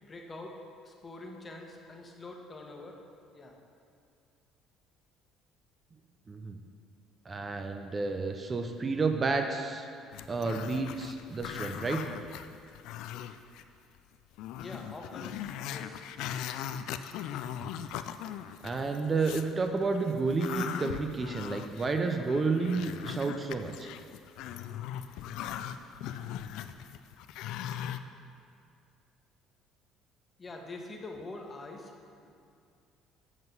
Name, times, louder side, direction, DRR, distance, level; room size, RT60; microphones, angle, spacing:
voice 1, 0.0-0.6 0.8-3.0 3.3-3.5 14.6-15.4 15.6-16.0 30.4-31.9, left 2 dB, 30° left, 1 dB, 1.2 m, -44 dB
voice 2, 6.3-6.6 7.3-9.9 10.3-12.0 17.6-17.7 18.6-23.9, right 4 dB, 30° right, 5 dB, 0.6 m, -31 dB
Growling, 10.1-13.6 14.0-14.1 14.4-19.5 19.9-28.0, left 10 dB, 75° left, 0.3 m, -39 dB
7.9 x 5.9 x 5.4 m, 2.4 s
supercardioid pair, 70°, 0 cm